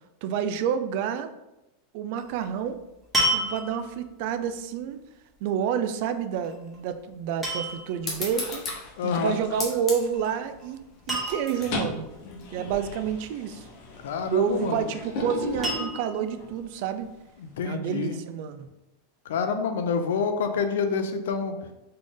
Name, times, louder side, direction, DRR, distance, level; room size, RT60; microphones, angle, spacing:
voice 1, 0.2-1.3 1.9-2.8 3.3-5.0 5.4-8.6 9.0-10.8 11.1-12.1 12.5-13.7 14.3-17.1 17.6-18.7, right 8 dB, 50° right, 10 dB, 0.3 m, -29 dB
sound 1, 2.2-2.4 3.1-4.0 6.4-6.8 7.4-8.0 9.9-10.3 10.6-10.7 11.1-11.8 14.1-14.7 15.6-16.3 17.0-17.1, right 1 dB, 5° right, 1.4 m, -29 dB
sound 2, 7.6-7.9 8.3-10.4 10.8-11.1 11.4-16.6, left 2 dB, 50° left, 0.8 m, -37 dB
sound 3, 8.0-13.1, left 2 dB, 20° left, 1.1 m, -38 dB
voice 2, 9.0-9.4 14.0-14.9 17.4-18.2 19.3-21.6, left 5 dB, 85° left, 8 dB, 0.5 m, -27 dB
4.1 x 3.2 x 3.7 m, 0.96 s
supercardioid pair, 160°, 0 cm